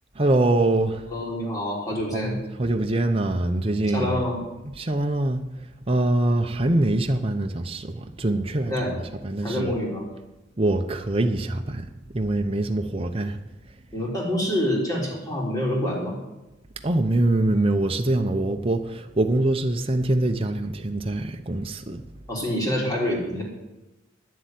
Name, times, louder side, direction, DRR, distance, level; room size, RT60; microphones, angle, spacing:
voice 1, 0.2-1.1 2.1-4.2 4.7-5.5 5.9-9.0 9.2-9.7 10.6-13.4 16.8-22.1, right 2 dB, 30° right, 5 dB, 0.7 m, -24 dB
voice 2, 1.1-2.3 3.9-4.4 8.7-8.9 9.4-10.0 13.9-16.2 22.3-23.4, left 1 dB, 20° left, -4 dB, 4.1 m, -26 dB
10.5 x 7.8 x 9.4 m, 1.0 s
head